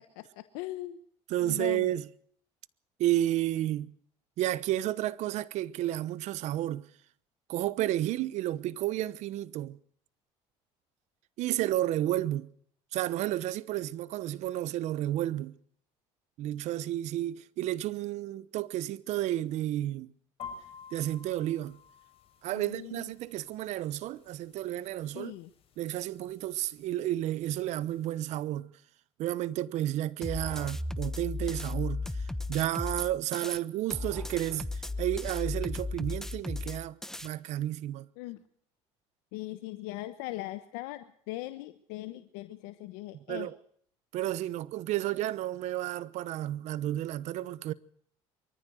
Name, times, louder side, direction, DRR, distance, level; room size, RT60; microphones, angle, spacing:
voice 1, 0.2-1.0 1.4-2.0 22.5-23.1 25.1-25.5 38.2-38.4 39.3-43.5, left 17 dB, 90° left, 1.1 m, -40 dB
voice 2, 1.3-2.0 3.0-3.9 4.4-6.8 7.5-9.8 11.4-12.5 12.9-15.5 16.4-20.1 20.9-21.8 22.4-25.3 25.8-28.7 29.2-37.0 37.2-38.1 43.3-43.5 44.1-47.7, right 14 dB, 65° right, 1.0 m, -31 dB
sound 1, 20.4-28.2, left 6 dB, 50° left, 6.4 m, -52 dB
sound 2, 30.2-33.6 33.9-37.3, left 2 dB, 5° left, 1.0 m, -35 dB
23.0 x 14.5 x 7.9 m
supercardioid pair, 95°, 13 cm